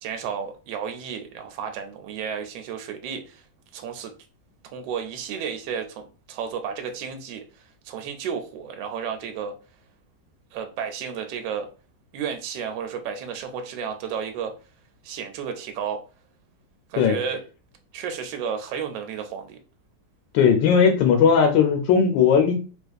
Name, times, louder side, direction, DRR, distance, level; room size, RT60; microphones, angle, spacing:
voice 1, 0.0-3.4 3.7-4.1 4.7-7.4 7.8-9.6 10.5-11.7 12.1-14.5 15.0-16.0 16.9-17.4 17.9-19.6, right 7 dB, 80° right, 1.2 m, -32 dB
voice 2, 20.3-22.5, left 6 dB, 85° left, 1.3 m, -17 dB
4.0 x 2.5 x 2.3 m
omnidirectional pair, 2.0 m